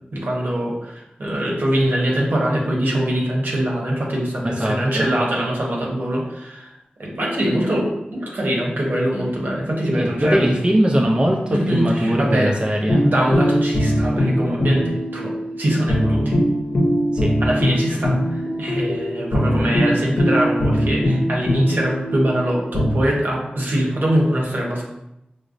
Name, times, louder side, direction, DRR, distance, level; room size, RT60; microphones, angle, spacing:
voice 1, 0.1-6.7 7.0-10.4 11.5-12.5 13.0-15.3 15.6-16.4 17.4-24.8, right 1 dB, 75° right, -3 dB, 0.9 m, -22 dB
voice 2, 4.4-5.1 9.9-13.0 17.1-17.3, equal, 30° right, 0 dB, 0.4 m, -20 dB
sound 1, 12.9-22.9, equal, 80° left, 0.6 m, -21 dB
4.9 x 2.0 x 2.5 m, 0.87 s
wide cardioid pair, 50°, 3 cm